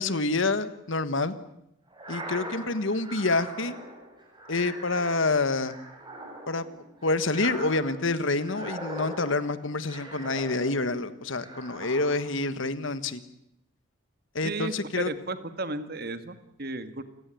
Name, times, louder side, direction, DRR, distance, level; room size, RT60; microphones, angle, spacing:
voice 1, 0.0-1.3 2.1-3.8 4.5-5.7 6.5-6.7 7.0-13.2 14.3-15.1, left 3 dB, 75° left, 13 dB, 1.6 m, -27 dB
sound 1, 1.9-11.0 11.4-12.4, right 1 dB, 20° right, 6.4 m, -41 dB
voice 2, 14.4-14.7 15.1-17.0, right 2 dB, 50° right, 10 dB, 1.7 m, -34 dB
29.0 x 16.5 x 9.2 m, 0.81 s
head